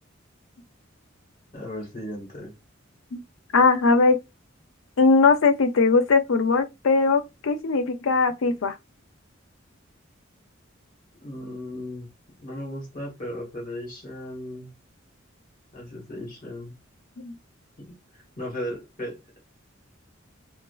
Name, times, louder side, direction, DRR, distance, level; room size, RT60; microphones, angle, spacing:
voice 1, 1.5-2.5 11.1-12.1 12.4-14.7 15.7-16.7 17.8-19.2, left 1 dB, 45° left, 1.2 m, -36 dB
voice 2, 3.5-4.2 5.0-8.7 17.2-17.3, left 4 dB, 85° left, 0.5 m, -20 dB
2.4 x 2.3 x 2.3 m
head